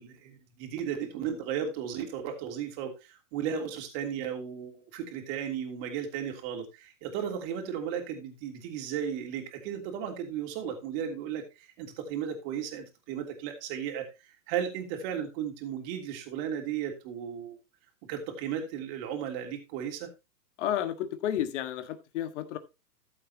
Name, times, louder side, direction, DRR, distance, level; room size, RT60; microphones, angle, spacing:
voice 1, 0.0-14.1 14.5-17.5 18.1-20.1, right 8 dB, 35° right, 2.9 m, -35 dB
voice 2, 20.6-22.6, left 11 dB, 45° left, 1.6 m, -31 dB
14.0 x 7.5 x 2.9 m
hypercardioid pair, 140°, 49 cm